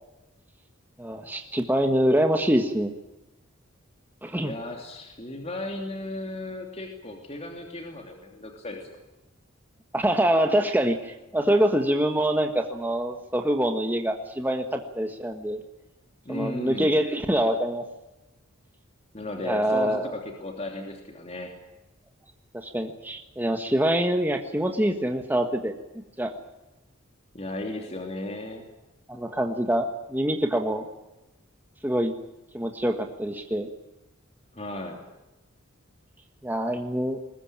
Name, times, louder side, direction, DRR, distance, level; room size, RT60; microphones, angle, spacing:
voice 1, 1.0-2.9 4.2-4.5 9.9-15.6 16.3-17.8 19.4-20.1 22.5-25.7 26.2-26.3 29.1-30.8 31.8-32.1 32.5-33.7 36.4-37.2, right 1 dB, 10° right, 4 dB, 1.5 m, -25 dB
voice 2, 4.4-8.8 16.2-16.9 19.1-21.5 27.3-28.6 34.5-35.0, left 2 dB, 30° left, 2 dB, 3.0 m, -35 dB
21.5 x 20.5 x 8.9 m, 0.99 s
head